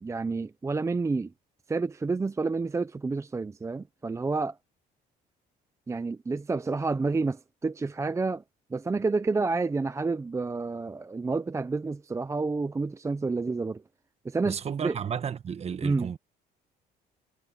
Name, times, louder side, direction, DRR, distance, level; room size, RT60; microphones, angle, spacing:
voice 1, 0.0-1.3 1.7-4.6 5.9-8.4 8.7-13.8 14.2-14.9 15.8-16.1, right 3 dB, 15° right, 0.6 m, -29 dB
voice 2, 14.4-16.2, right 7 dB, 40° right, 1.3 m, -33 dB
cardioid pair, 110°, 17 cm